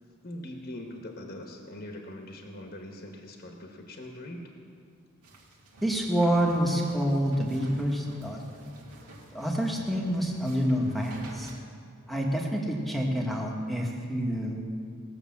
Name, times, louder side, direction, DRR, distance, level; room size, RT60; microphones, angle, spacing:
voice 1, 0.2-4.4, left 1 dB, 40° left, 2 dB, 1.2 m, -42 dB
sound 1, 5.2-11.6, right 1 dB, 80° right, 2.1 m, -50 dB
voice 2, 5.8-8.6 9.3-11.5 12.1-14.7, equal, ahead, -1 dB, 1.4 m, -27 dB
18.5 x 6.8 x 7.2 m, 2.2 s
head